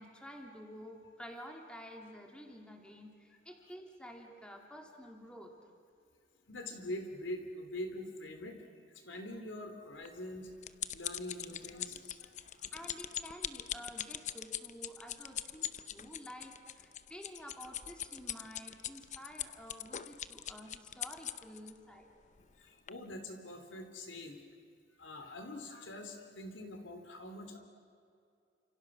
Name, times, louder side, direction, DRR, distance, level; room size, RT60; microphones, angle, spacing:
voice 1, 0.0-5.5 12.7-22.1, equal, 5° left, 1 dB, 2.9 m, -50 dB
voice 2, 6.5-8.6 8.9-10.5 10.9-12.7 22.6-24.4 25.0-27.6, left 1 dB, 85° left, 5 dB, 3.4 m, -44 dB
sound 1, 10.1-21.7 22.4-22.5 22.9-23.0, left 10 dB, 40° left, 0.7 m, -41 dB
29.5 x 27.0 x 6.4 m, 2.4 s
head